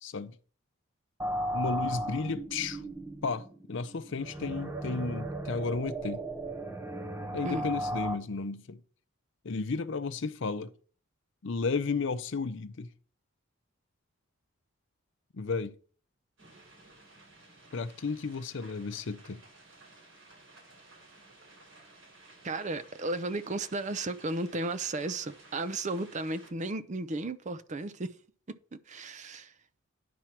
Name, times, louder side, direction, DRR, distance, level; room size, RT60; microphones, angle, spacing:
voice 1, 0.0-0.3 1.5-2.8 3.2-6.2 7.3-8.8 9.4-10.7 11.4-12.9 15.3-15.7 17.7-19.4, left 4 dB, 60° left, 0.6 m, -33 dB
sound 1, 1.2-8.1, right 1 dB, 10° right, 0.8 m, -36 dB
sound 2, 16.4-26.5, right 2 dB, 65° right, 5.0 m, -56 dB
voice 2, 22.4-28.1 28.5-29.5, right 2 dB, 35° right, 0.5 m, -34 dB
10.0 x 4.5 x 5.9 m
head